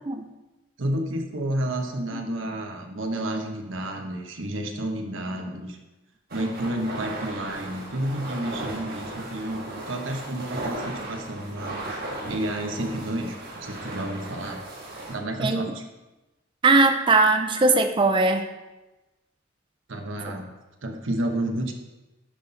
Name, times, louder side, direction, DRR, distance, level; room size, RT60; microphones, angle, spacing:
voice 1, 0.8-5.8 6.3-11.8 12.3-14.6 15.1-15.8 19.9-20.5 20.8-21.7, right 1 dB, 85° right, 3 dB, 1.0 m, -30 dB
sound 1, 6.3-15.1, right 2 dB, 50° right, 1.4 m, -36 dB
voice 2, 15.4-15.7 16.6-18.5, right 3 dB, 25° right, 7 dB, 0.4 m, -20 dB
11.0 x 4.2 x 4.0 m, 1.1 s
head